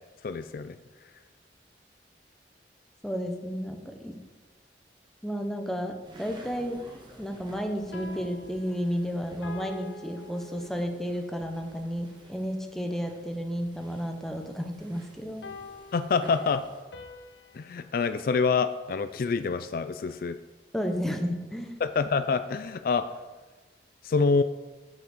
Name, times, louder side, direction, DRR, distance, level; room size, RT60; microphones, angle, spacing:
voice 1, 0.2-0.8 15.9-16.6 17.5-20.4 21.8-23.1 24.0-24.4, left 4 dB, 55° left, 11 dB, 0.3 m, -26 dB
voice 2, 3.0-4.2 5.2-6.8 7.2-15.5 20.7-21.8, equal, ahead, 4 dB, 0.8 m, -32 dB
sound 1, 6.0-16.8, right 1 dB, 25° right, 1.5 m, -52 dB
sound 2, 7.7-11.2 15.4-17.9, left 2 dB, 85° left, 0.9 m, -46 dB
7.6 x 6.2 x 7.0 m, 1.3 s
head